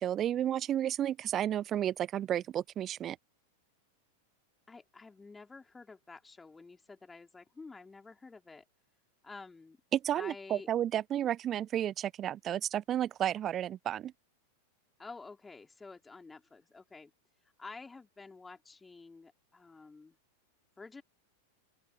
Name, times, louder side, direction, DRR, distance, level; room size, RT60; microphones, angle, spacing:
voice 1, 0.0-3.2 9.9-14.1, right 11 dB, 30° right, 0.7 m, -32 dB
voice 2, 4.7-8.6 9.2-9.8 10.1-10.7 15.0-17.1 17.4-20.2 20.8-21.0, left 4 dB, 10° left, 3.1 m, -50 dB
open air
figure-of-eight pair, 90°, 0 cm